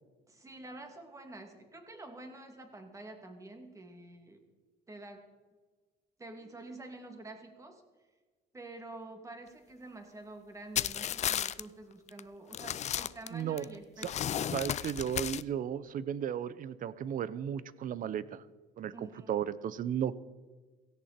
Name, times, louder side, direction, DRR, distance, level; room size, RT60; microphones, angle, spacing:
voice 1, 0.3-4.4 4.9-5.3 6.2-7.8 8.5-14.5 18.9-19.3, right 2 dB, 15° right, 4 dB, 2.6 m, -48 dB
sound 1, 10.8-11.6 12.1-12.2 12.5-13.6 14.0-15.4, left 10 dB, 40° left, 0.5 m, -33 dB
voice 2, 13.3-13.6 14.0-14.1 14.5-18.4 18.8-20.2, right 9 dB, 50° right, 17 dB, 0.8 m, -35 dB
17.0 x 17.0 x 4.4 m, 1.4 s
cardioid pair, 135°, 18 cm